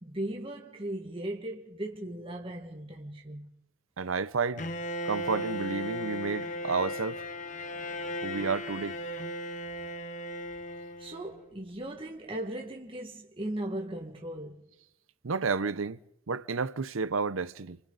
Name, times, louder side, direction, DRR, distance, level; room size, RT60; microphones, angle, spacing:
voice 1, 0.0-3.5 11.0-14.6, right 1 dB, 25° right, 1.8 m, -37 dB
voice 2, 4.0-4.7 5.0-7.2 8.2-9.0 15.2-16.0 16.3-17.8, right 4 dB, 80° right, 0.7 m, -31 dB
Bowed string instrument, 4.6-11.5, left 1 dB, 35° left, 0.9 m, -36 dB
27.0 x 25.5 x 4.1 m
head